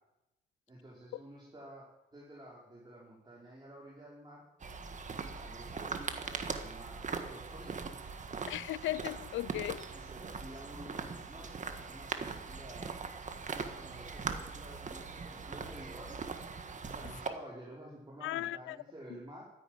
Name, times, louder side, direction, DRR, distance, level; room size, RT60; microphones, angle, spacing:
voice 1, 0.7-4.4 5.2-7.8 9.9-13.0 13.5-16.2 16.8-19.4, right 1 dB, 20° right, 5.2 m, -51 dB
sound 1, 4.6-17.3, right 5 dB, 40° right, 1.7 m, -41 dB
voice 2, 8.5-9.9 18.2-18.8, left 15 dB, 80° left, 0.5 m, -36 dB
13.5 x 10.5 x 9.4 m
cardioid pair, 90°, 20 cm